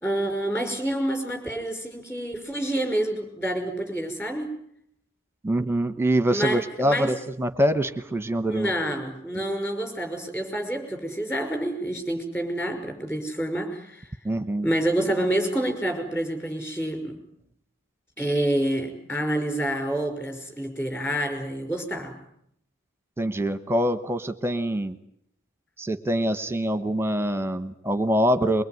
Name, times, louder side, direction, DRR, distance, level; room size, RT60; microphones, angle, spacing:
voice 1, 0.0-4.5 6.3-7.1 8.5-14.1 14.6-17.2 18.2-22.1, right 1 dB, 10° left, 5 dB, 5.5 m, -28 dB
voice 2, 5.4-8.7 14.2-14.7 23.2-25.0 25.8-28.6, right 1 dB, 10° right, 11 dB, 1.0 m, -24 dB
23.0 x 22.5 x 9.4 m, 0.69 s
head